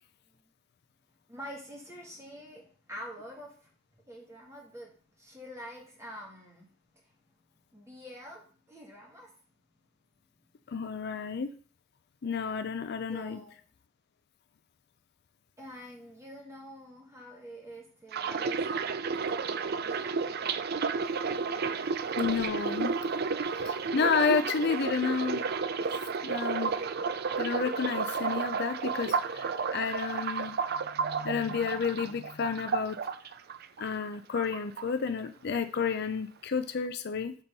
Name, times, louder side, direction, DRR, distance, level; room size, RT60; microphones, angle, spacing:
voice 1, 1.3-6.7 7.0-7.2 7.7-9.4 13.1-13.6 15.6-20.3 23.1-23.3, equal, 15° right, -1 dB, 2.2 m, -47 dB
voice 2, 10.7-11.5 12.2-13.4 22.2-22.9 23.6-25.4 26.2-26.7 27.4-30.6 31.0-33.0 33.8-37.4, left 5 dB, 55° left, 10 dB, 0.5 m, -31 dB
sound 1, 18.1-34.1 34.4-35.3 35.5-35.9, right 5 dB, 50° right, 0.5 m, -32 dB
6.8 x 4.4 x 5.3 m, 0.42 s
head